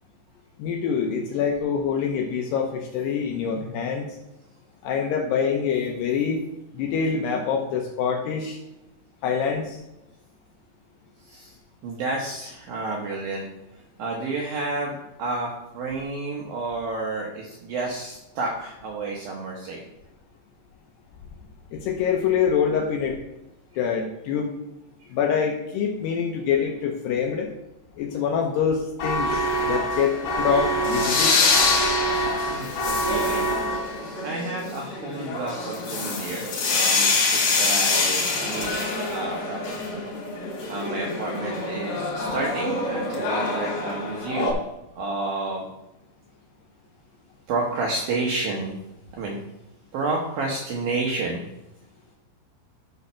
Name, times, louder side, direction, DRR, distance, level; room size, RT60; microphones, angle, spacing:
voice 1, 0.6-4.1 4.8-6.4 6.7-8.6 9.2-9.8 21.7-23.2 23.8-24.5 25.1-27.5 28.0-29.4 29.7-31.3, left 7 dB, 80° left, 2 dB, 2.5 m, -25 dB
voice 2, 11.2-11.6 11.8-13.5 14.0-19.8 25.0-25.1 32.4-38.8 39.1-40.1 40.7-44.6 45.0-45.7 47.5-48.8 49.1-49.4 49.9-51.5, right 3 dB, 75° right, -1 dB, 2.2 m, -30 dB
sound 1, 29.0-34.2, right 1 dB, 40° left, 3.7 m, -26 dB
sound 2, 29.3-44.5, left 3 dB, 60° left, 3.7 m, -26 dB
11.0 x 4.1 x 5.6 m, 0.90 s
omnidirectional pair, 5.5 m